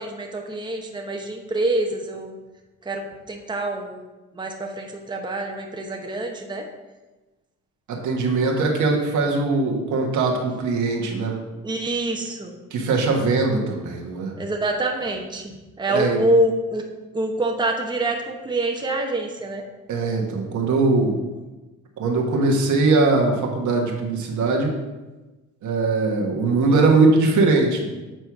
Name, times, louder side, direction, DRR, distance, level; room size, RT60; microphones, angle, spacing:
voice 1, 0.0-2.4 2.8-4.0 4.3-6.6 11.6-12.5 14.4-15.5 15.8-16.8 17.1-19.6, right 1 dB, 15° right, 1 dB, 1.0 m, -26 dB
voice 2, 7.9-11.4 12.7-14.3 15.9-16.2 19.9-21.2 22.0-24.7 25.6-27.9, right 3 dB, 75° right, 0 dB, 1.5 m, -21 dB
7.8 x 4.5 x 4.7 m, 1.1 s
cardioid pair, 90°, 30 cm